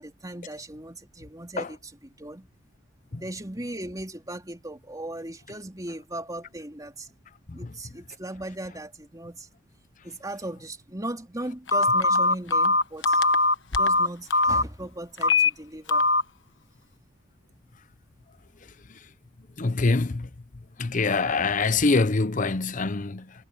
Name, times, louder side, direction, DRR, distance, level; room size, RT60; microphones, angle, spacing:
voice 1, 0.0-1.9 2.2-2.5 3.1-7.1 7.5-9.5 10.0-13.2 13.8-16.0, right 1 dB, 15° right, 3.6 m, -37 dB
Telephone, 11.7-14.6 15.2-15.5 15.9-16.2, left 2 dB, 60° left, 1.3 m, -21 dB
voice 2, 19.6-20.3 20.8-23.3, left 3 dB, 40° left, 0.7 m, -24 dB
head